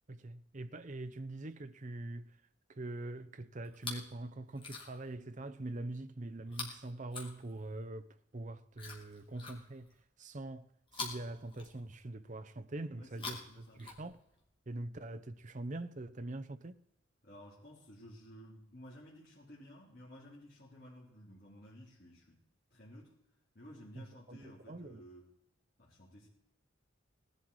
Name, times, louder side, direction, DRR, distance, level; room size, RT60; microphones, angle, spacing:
voice 1, 0.1-2.3 2.7-9.9 10.2-10.7 10.9-14.2 14.7-16.8 24.0-25.0, right 2 dB, 40° right, 0.7 m, -43 dB
Chewing mastication, 3.6-4.1 4.5-5.1 6.5-7.9 8.7-10.0 10.9-12.1 13.0-14.4 15.3-15.4, left 4 dB, 25° left, 3.0 m, -46 dB
voice 2, 13.0-13.8 17.2-22.4 22.7-23.1 23.5-25.3 25.8-26.3, equal, 50° left, 3.2 m, -54 dB
19.0 x 11.5 x 4.7 m
head